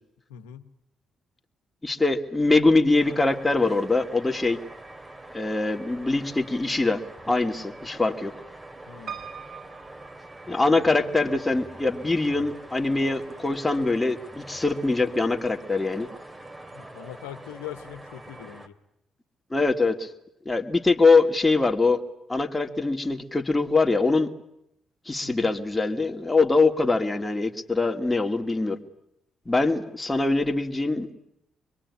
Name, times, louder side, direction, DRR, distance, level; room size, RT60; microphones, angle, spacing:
voice 1, 0.3-0.7 8.9-9.2 16.7-18.7 25.2-25.5, left 11 dB, 90° left, 8 dB, 1.5 m, -41 dB
voice 2, 1.8-4.6 5.3-8.3 10.5-16.1 19.5-20.1 20.4-22.0 22.3-24.3 25.1-28.8 29.5-31.1, left 3 dB, 20° left, 6 dB, 2.8 m, -23 dB
sound 1, 3.0-18.7, right 2 dB, 20° right, 3.1 m, -44 dB
Piano, 9.1-11.1 11.7-12.4 12.7-12.8 13.0-13.1, right 8 dB, 60° right, 1.7 m, -42 dB
26.0 x 22.5 x 10.0 m, 0.81 s
hypercardioid pair, 50°, 0 cm